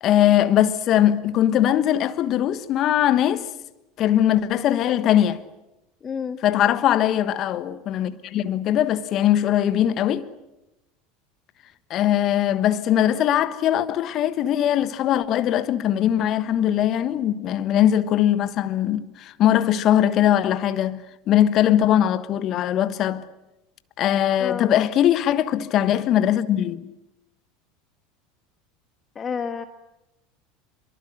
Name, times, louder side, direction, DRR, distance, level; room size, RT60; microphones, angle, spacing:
voice 1, 0.0-3.5 4.0-5.4 6.4-10.3 11.9-23.3 24.0-26.9, left 11 dB, 45° left, 1.3 m, -21 dB
voice 2, 6.0-6.4 24.4-24.7 29.1-29.6, left 6 dB, 30° left, 1.5 m, -29 dB
26.5 x 23.5 x 7.9 m
figure-of-eight pair, 80°, 0 cm